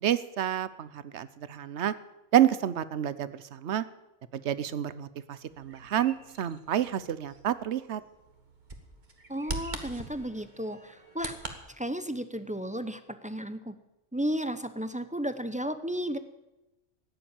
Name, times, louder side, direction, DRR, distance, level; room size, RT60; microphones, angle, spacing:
voice 1, 0.0-1.9 2.3-3.8 4.3-8.0, right 10 dB, 65° right, 15 dB, 1.0 m, -29 dB
Bird vocalization bird call bird song, 5.5-11.6, right 2 dB, 40° right, 1.7 m, -43 dB
voice 2, 9.3-11.3 11.8-13.7 14.1-16.2, equal, 10° right, 10 dB, 0.6 m, -33 dB
14.5 x 10.0 x 8.8 m, 0.99 s
omnidirectional pair, 1.3 m